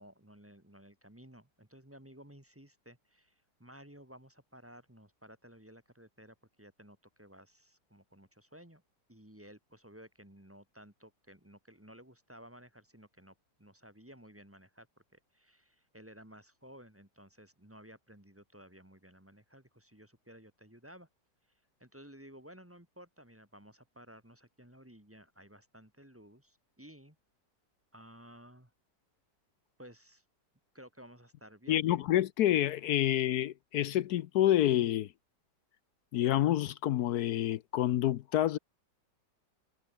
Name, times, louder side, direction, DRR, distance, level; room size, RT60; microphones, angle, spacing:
voice 1, 0.0-8.8 9.1-14.9 15.1-21.1 21.8-27.2 27.9-28.7 29.8-30.2 30.7-31.8, equal, 5° right, 2.0 m, -55 dB
voice 2, 31.7-35.1 36.1-38.6, left 12 dB, 70° left, 1.1 m, -28 dB
omnidirectional pair, 1.9 m